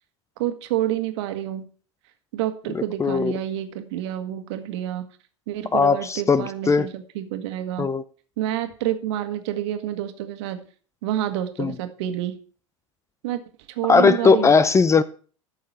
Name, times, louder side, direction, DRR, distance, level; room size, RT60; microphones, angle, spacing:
voice 1, 0.4-1.7 2.3-5.0 5.5-7.9 8.4-10.7 11.0-12.4 13.2-13.4 13.7-14.5, right 12 dB, 60° right, 1.6 m, -28 dB
voice 2, 2.7-3.3 5.7-6.9 7.8-8.0 11.6-11.7 13.9-15.0, left 5 dB, 15° left, 0.6 m, -18 dB
14.0 x 6.7 x 4.3 m
figure-of-eight pair, 80°, 17 cm